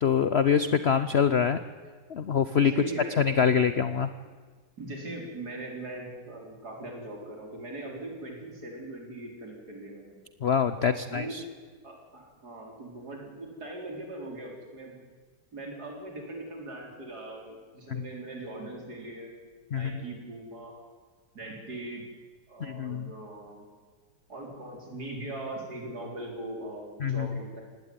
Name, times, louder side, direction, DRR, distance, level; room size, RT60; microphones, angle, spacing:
voice 1, 0.0-1.6 2.1-2.7 3.2-4.1 10.4-11.4 17.9-18.0 19.7-19.9 22.6-23.1 27.0-27.3, left 7 dB, 55° left, 12 dB, 0.7 m, -25 dB
voice 2, 2.7-3.3 4.8-10.2 10.9-11.4 11.8-15.0 15.5-19.3 19.7-20.8 21.3-22.0 22.5-23.7 24.3-27.6, right 2 dB, 60° right, 1 dB, 4.9 m, -40 dB
19.0 x 17.0 x 9.6 m, 1.5 s
omnidirectional pair, 1.9 m